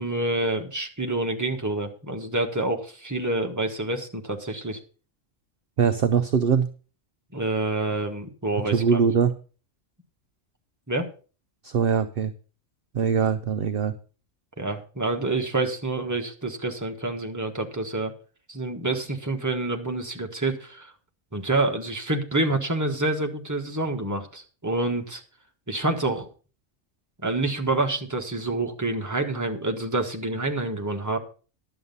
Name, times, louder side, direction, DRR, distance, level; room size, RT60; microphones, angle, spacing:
voice 1, 0.0-4.8 7.3-9.0 10.9-11.1 14.6-18.1 18.5-20.9 21.3-25.2 25.7-26.3 27.2-31.2, right 2 dB, 15° right, 3 dB, 1.4 m, -27 dB
voice 2, 5.8-6.7 8.7-9.3 11.6-12.3 12.9-13.9, right 6 dB, 55° right, 11 dB, 0.8 m, -22 dB
11.5 x 8.0 x 5.4 m, 0.37 s
omnidirectional pair, 1.4 m